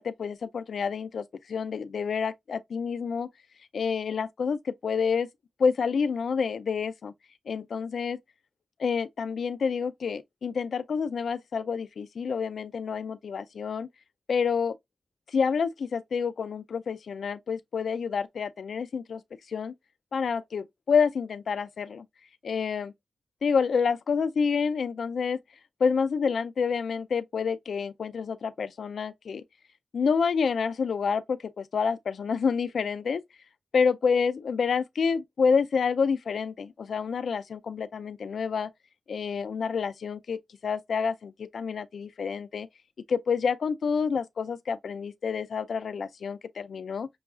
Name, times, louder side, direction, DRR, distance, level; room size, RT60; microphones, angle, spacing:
voice 1, 0.0-3.3 3.7-5.3 5.6-7.1 7.5-8.2 8.8-13.9 14.3-14.8 15.3-19.2 19.5-19.7 20.1-22.0 22.4-22.9 23.4-25.4 25.8-29.4 29.9-33.2 33.7-38.7 39.1-42.7 43.1-47.1, left 5 dB, 80° left, 0.4 m, -28 dB
6.1 x 2.3 x 2.3 m
cardioid pair, 70°, 0 cm